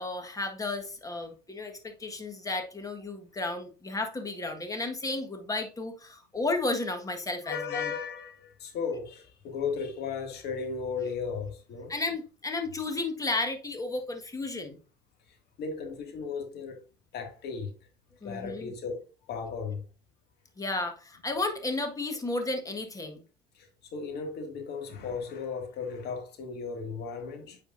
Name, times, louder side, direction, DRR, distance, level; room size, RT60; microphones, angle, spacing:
voice 1, 0.0-7.9 11.9-14.8 18.2-18.7 20.6-23.2, left 2 dB, 15° left, 1.6 m, -33 dB
voice 2, 7.4-11.9 15.3-16.8 17.1-17.7 18.2-19.0 19.3-19.8 23.5-27.6, left 5 dB, 55° left, 2.2 m, -35 dB
9.0 x 5.1 x 2.7 m
supercardioid pair, 90°, 20 cm